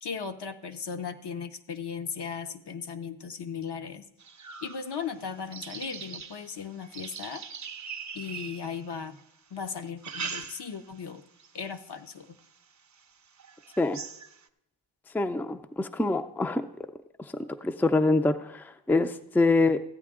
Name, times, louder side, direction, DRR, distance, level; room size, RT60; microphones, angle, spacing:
voice 1, 0.0-4.0 4.6-7.4 8.1-9.2 9.5-11.2 11.5-12.4, left 6 dB, 60° left, 7 dB, 0.8 m, -37 dB
sound 1, 4.2-9.2 9.8-11.0 11.4-11.8 12.4-12.5 12.9-13.0 13.4-14.5, right 5 dB, 35° right, 0.7 m, -41 dB
voice 2, 15.1-16.6 17.2-17.3 17.6-19.8, left 2 dB, 5° left, 8 dB, 0.4 m, -25 dB
13.5 x 8.4 x 3.7 m, 0.79 s
cardioid pair, 55°, 47 cm